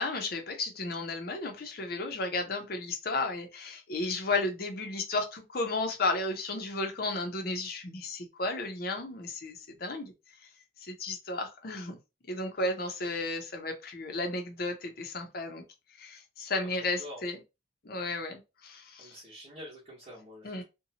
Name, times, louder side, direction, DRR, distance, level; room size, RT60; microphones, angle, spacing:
voice 1, 0.0-10.1 10.8-12.0 12.3-15.6 16.0-17.4 17.8-19.1 20.4-20.6, left 2 dB, 50° left, 0.7 m, -33 dB
voice 2, 16.7-17.2 19.0-20.6, left 1 dB, 40° right, 1.0 m, -47 dB
2.7 x 2.2 x 2.8 m
head